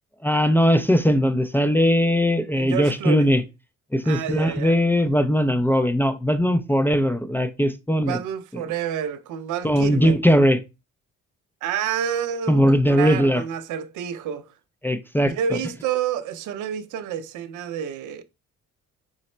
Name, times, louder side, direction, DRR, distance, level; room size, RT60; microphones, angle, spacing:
voice 1, 0.2-3.4 3.9-8.2 9.6-10.6 12.5-13.4 14.8-15.3, equal, 5° left, 0.3 m, -19 dB
voice 2, 2.5-3.3 4.0-4.8 8.0-10.2 11.6-14.5 15.2-18.2, right 9 dB, 80° right, 0.5 m, -29 dB
3.9 x 2.1 x 4.2 m
cardioid pair, 90°, 30 cm